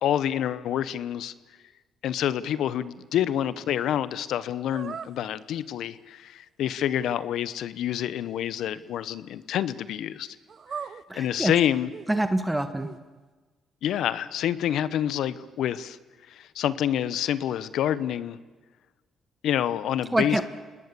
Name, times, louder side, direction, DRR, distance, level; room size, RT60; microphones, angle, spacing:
voice 1, 0.0-1.3 2.0-10.4 11.1-11.9 13.8-16.0 16.3-18.4 19.4-20.4, left 10 dB, 75° left, 16 dB, 1.0 m, -27 dB
sound 1, 4.7-5.1 10.5-11.5 11.9-12.3 12.8-13.0, right 6 dB, 50° right, 0.8 m, -39 dB
voice 2, 11.1-11.5 12.1-12.9 20.1-20.4, right 1 dB, 10° right, 9 dB, 1.5 m, -25 dB
28.5 x 20.0 x 7.0 m, 1.3 s
supercardioid pair, 70°, 0 cm